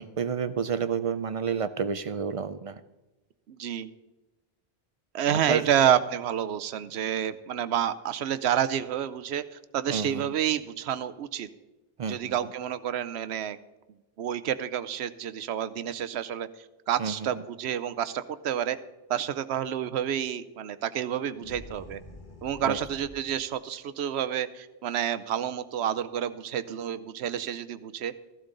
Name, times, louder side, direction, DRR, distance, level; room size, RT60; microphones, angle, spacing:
voice 1, 0.0-2.8 5.3-5.7 9.9-10.3 12.0-12.4 17.0-17.3 22.6-22.8, right 6 dB, 50° right, 13 dB, 0.4 m, -30 dB
voice 2, 3.5-3.9 5.1-11.5 12.1-13.6 14.2-18.8 19.1-22.0 22.4-28.1, right 10 dB, 85° right, 13 dB, 0.9 m, -29 dB
sound 1, 21.3-23.5, left 2 dB, 50° left, 1.4 m, -47 dB
14.5 x 12.0 x 3.9 m, 1.1 s
omnidirectional pair, 1.1 m